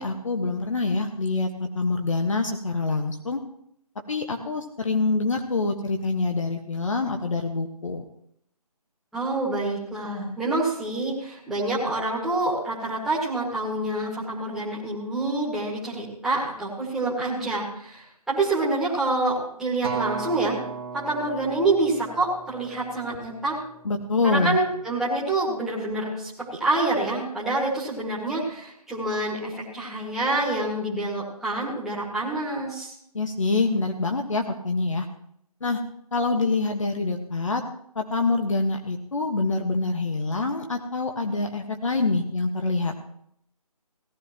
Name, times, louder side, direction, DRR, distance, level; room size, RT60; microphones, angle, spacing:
voice 1, 0.0-1.5 1.7-3.4 4.1-8.0 23.8-24.6 33.1-35.0 35.6-35.8 36.1-37.6 37.9-42.9, left 3 dB, 55° left, 3 dB, 1.5 m, -25 dB
voice 2, 9.1-20.6 20.9-23.6 24.2-32.9, right 2 dB, ahead, -8 dB, 2.0 m, -27 dB
Acoustic guitar, 19.8-24.2 24.9-25.0, right 5 dB, 40° right, 1.8 m, -36 dB
18.0 x 11.0 x 3.0 m, 0.71 s
figure-of-eight pair, 160°, 20 cm